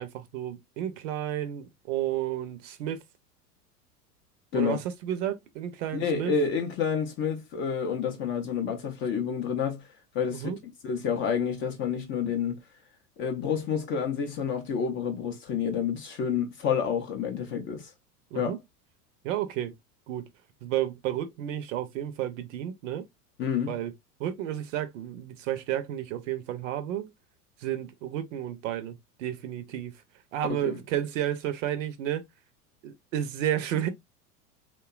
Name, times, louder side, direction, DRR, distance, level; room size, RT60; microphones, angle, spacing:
voice 1, 0.0-3.0 4.5-6.3 10.3-10.6 18.3-18.6 19.2-19.7 20.1-20.3 20.6-23.1 23.7-23.9 24.2-27.1 27.6-29.9 30.3-32.2 32.8-33.9, right 11 dB, 55° right, 0.6 m, -32 dB
voice 2, 5.9-9.9 10.1-10.5 10.8-12.6 13.2-17.9 18.3-18.6 23.4-23.8 30.5-30.8, left 7 dB, 25° left, 0.5 m, -29 dB
2.9 x 2.2 x 2.3 m
hypercardioid pair, 90°, 47 cm